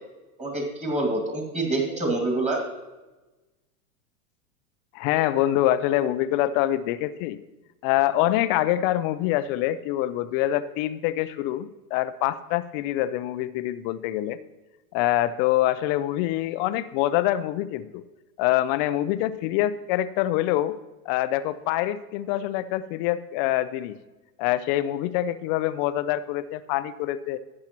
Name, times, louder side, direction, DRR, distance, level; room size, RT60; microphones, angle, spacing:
voice 1, 0.4-2.6, right 2 dB, 15° right, 0 dB, 2.2 m, -26 dB
voice 2, 4.9-7.4 7.8-14.4 14.9-18.0 18.4-20.7 21.1-24.0 24.4-27.4, left 14 dB, 35° left, 14 dB, 0.4 m, -25 dB
12.0 x 8.6 x 3.0 m, 1.1 s
hypercardioid pair, 110°, 47 cm